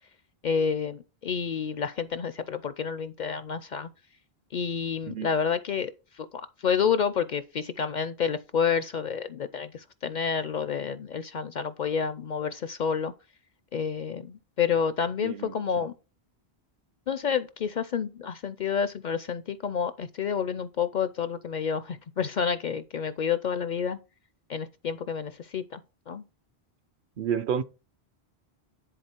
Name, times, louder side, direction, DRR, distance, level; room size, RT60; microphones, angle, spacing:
voice 1, 0.4-3.9 4.5-13.1 13.7-15.9 17.1-24.0 24.5-25.8 26.1-26.2, left 7 dB, 55° left, 0.5 m, -29 dB
voice 2, 15.2-15.8 27.2-27.6, right 8 dB, 60° right, 0.7 m, -31 dB
10.5 x 4.0 x 4.4 m
omnidirectional pair, 1.1 m